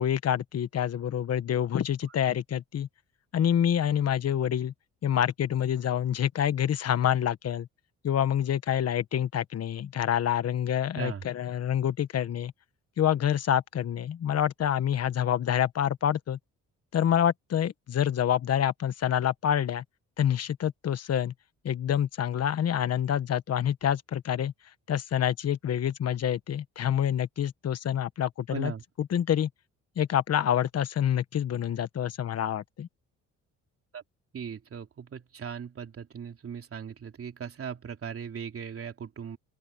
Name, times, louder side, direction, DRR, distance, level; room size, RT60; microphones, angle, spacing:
voice 1, 0.0-2.9 3.3-4.7 5.0-7.7 8.0-12.5 13.0-16.4 16.9-19.8 20.2-21.3 21.6-24.5 24.9-28.7 29.0-29.5 30.0-32.9, left 10 dB, 55° left, 1.3 m, -27 dB
voice 2, 10.9-11.2 28.5-28.8 33.9-34.0 34.3-39.4, right 7 dB, 50° right, 3.2 m, -38 dB
open air
cardioid pair, 90°, 30 cm